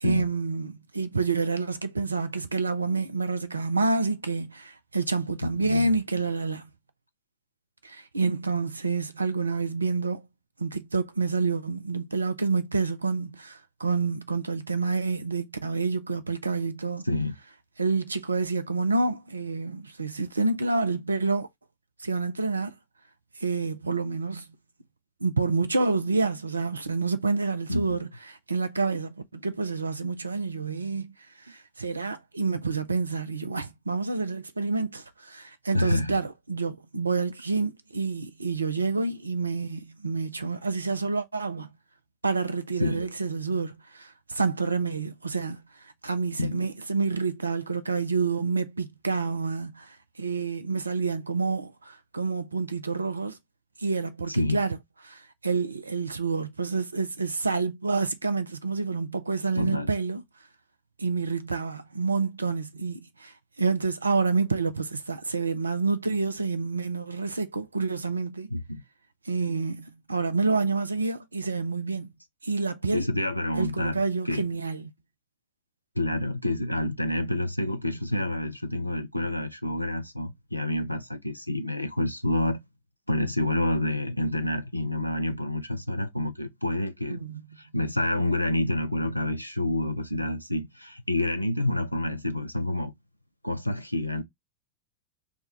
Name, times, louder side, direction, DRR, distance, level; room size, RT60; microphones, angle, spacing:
voice 1, 0.0-6.7 7.8-10.3 10.6-17.0 17.8-21.5 22.0-22.7 23.4-24.5 25.2-31.1 31.4-41.7 42.2-53.4 53.8-54.8 55.0-60.2 61.0-68.5 69.3-72.1 72.4-73.1 73.6-74.9 87.1-87.4, right 4 dB, 80° right, 0.5 m, -28 dB
voice 2, 5.4-6.0 17.0-17.3 27.7-28.0 35.7-36.2 42.8-43.1 46.4-46.7 54.3-54.6 59.5-59.9 68.5-68.8 72.9-74.4 76.0-82.6 83.1-87.2 87.6-92.9 93.4-94.2, left 1 dB, 90° left, 0.5 m, -28 dB
3.5 x 2.2 x 4.1 m
figure-of-eight pair, 90°, 0 cm